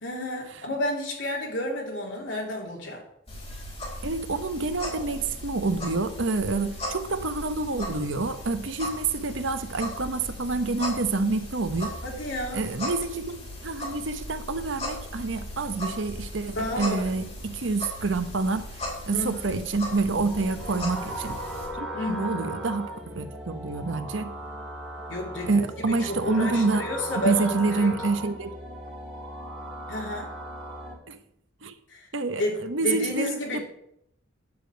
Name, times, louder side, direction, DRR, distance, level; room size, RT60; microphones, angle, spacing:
voice 1, 0.0-3.0 12.0-12.6 16.5-17.1 19.1-19.5 21.9-22.4 25.1-27.9 29.9-30.3 31.9-32.1 32.4-33.6, left 1 dB, 75° left, 0 dB, 3.1 m, -31 dB
sound 1, 3.3-21.7, left 1 dB, 30° left, 3.6 m, -37 dB
voice 2, 4.0-11.9 12.5-21.4 21.8-24.3 25.5-26.8 27.2-28.5 31.1-31.2 31.6-31.7 32.1-33.6, right 3 dB, 80° right, 10 dB, 0.9 m, -28 dB
sound 2, 20.3-30.9, right 1 dB, ahead, 2.6 m, -37 dB
9.8 x 5.2 x 8.0 m, 0.76 s
head